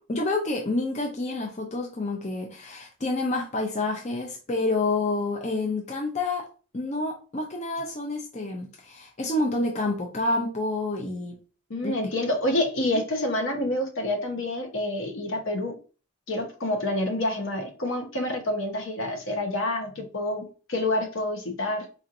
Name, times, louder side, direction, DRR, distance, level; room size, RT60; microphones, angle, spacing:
voice 1, 0.1-6.4 6.7-11.4 11.8-11.9 12.9-13.0, left 2 dB, 35° left, 0 dB, 0.6 m, -28 dB
voice 2, 11.7-15.7 16.3-21.9, left 1 dB, 70° left, 3 dB, 1.0 m, -28 dB
4.2 x 2.8 x 2.5 m, 0.36 s
head